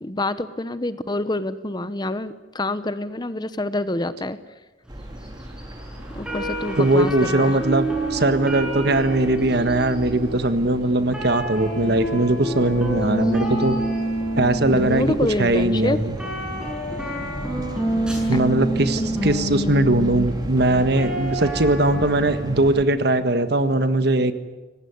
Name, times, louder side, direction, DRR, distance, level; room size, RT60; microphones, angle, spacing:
voice 1, 0.0-4.4 6.1-7.6 14.7-16.0 18.3-18.4 19.0-19.1, left 2 dB, 25° left, 13 dB, 0.9 m, -27 dB
sound 1, 4.9-22.8, equal, 20° right, 2.5 m, -36 dB
sound 2, 5.0-22.4, right 1 dB, 5° right, 7.2 m, -28 dB
voice 2, 6.8-13.7 14.3-16.2 18.3-24.3, right 2 dB, 60° right, 10 dB, 1.6 m, -20 dB
25.0 x 19.0 x 9.6 m, 1.2 s
head